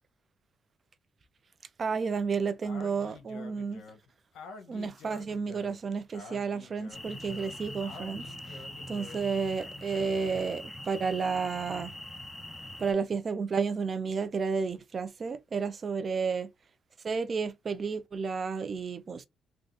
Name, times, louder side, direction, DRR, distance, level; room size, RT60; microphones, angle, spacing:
voice 1, 1.8-3.8 4.7-8.6 8.9-11.9 12.8-16.5 17.0-19.2, right 5 dB, 40° right, 0.5 m, -31 dB
Speech, 2.6-9.4, left 5 dB, 80° left, 0.8 m, -49 dB
sound 1, 6.9-12.9, left 1 dB, 10° left, 0.8 m, -43 dB
3.4 x 2.5 x 2.5 m
cardioid pair, 90°, 0 cm